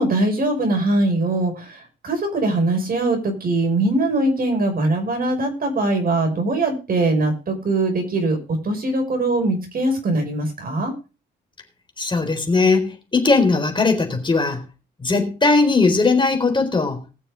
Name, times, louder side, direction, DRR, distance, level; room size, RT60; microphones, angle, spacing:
voice 1, 0.0-10.9, right 2 dB, 45° right, 4 dB, 5.6 m, -21 dB
voice 2, 12.0-14.6 15.0-17.0, left 3 dB, 25° left, 4 dB, 4.2 m, -19 dB
20.0 x 7.0 x 5.0 m, 0.32 s
cardioid pair, 90°, 20 cm